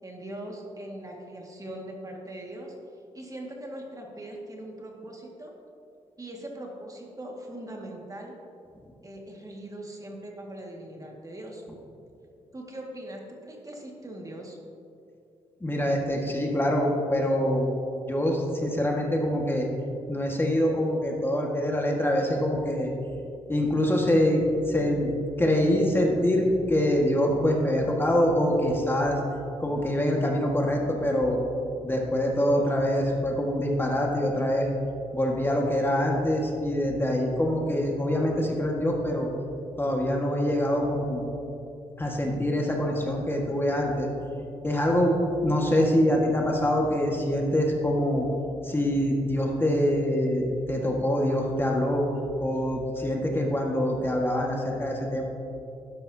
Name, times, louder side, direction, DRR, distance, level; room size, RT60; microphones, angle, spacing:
voice 1, 0.0-2.8 3.1-5.5 6.2-8.3 9.0-11.6 12.5-14.6, right 1 dB, 25° right, 0 dB, 2.0 m, -40 dB
voice 2, 15.6-17.7 18.1-19.7 20.1-22.9 23.5-25.1 25.4-29.2 29.6-31.4 31.8-34.7 35.1-39.3 39.8-41.2 42.0-44.1 44.6-45.2 45.4-48.3 48.6-52.1 52.4-55.2, left 1 dB, 15° left, -1 dB, 1.7 m, -25 dB
12.5 x 10.0 x 2.8 m, 2.6 s
supercardioid pair, 60°, 13 cm